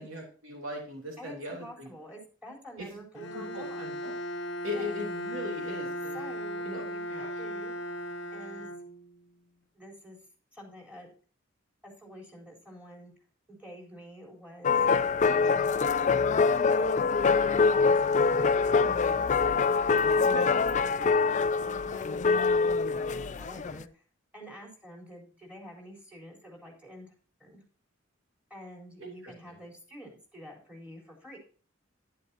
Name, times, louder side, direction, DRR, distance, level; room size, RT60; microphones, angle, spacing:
voice 1, 0.0-1.9 2.8-2.9 3.3-4.1 4.6-6.2 6.6-6.8 7.1-7.3 15.3-15.4 20.3-20.5 29.0-29.6, left 1 dB, 85° right, 0 dB, 3.2 m, -39 dB
voice 2, 1.2-3.9 4.7-5.0 6.1-7.8 8.3-8.7 9.7-10.2 10.5-11.1 11.8-13.1 13.5-14.8 15.3-16.9 17.6-19.3 20.1-24.0 24.3-27.1 27.4-27.6 28.5-31.4, equal, 5° right, -2 dB, 4.1 m, -47 dB
Bowed string instrument, 3.1-9.3, equal, 60° left, 0.9 m, -37 dB
sound 1, 14.6-23.8, left 5 dB, 40° left, 0.4 m, -24 dB
11.0 x 11.0 x 2.8 m, 0.38 s
head